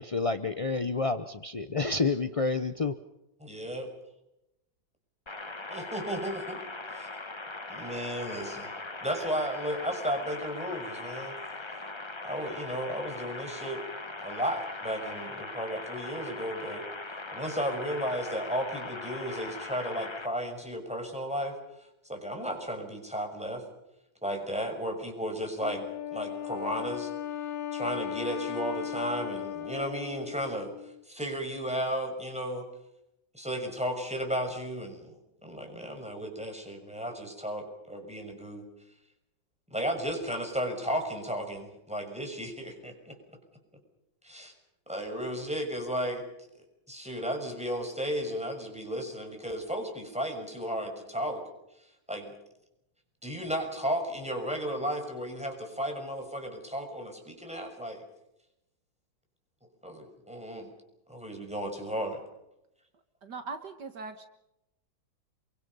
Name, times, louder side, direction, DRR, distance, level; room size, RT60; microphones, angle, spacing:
voice 1, 0.0-2.9, left 3 dB, 40° left, 9 dB, 0.5 m, -29 dB
voice 2, 3.4-3.9 5.7-6.6 6.9-7.1 7.7-8.7 9.0-11.4 12.2-13.8 14.2-16.8 17.3-21.6 22.0-23.6 24.2-27.1 27.7-30.7 31.1-32.6 33.3-35.1 35.4-38.6 39.7-43.2 44.2-44.5 44.9-46.2 46.9-51.4 52.1-52.3 53.2-58.0 59.8-60.7 61.1-62.2, equal, 5° right, 3 dB, 6.2 m, -34 dB
sound 1, 5.3-20.3, left 2 dB, 20° left, 1.1 m, -40 dB
Wind instrument woodwind instrument, 25.6-31.0, left 10 dB, 85° left, 2.3 m, -37 dB
voice 3, 63.2-64.3, right 4 dB, 60° right, 8 dB, 2.0 m, -40 dB
28.0 x 24.0 x 5.6 m, 0.86 s
omnidirectional pair, 2.1 m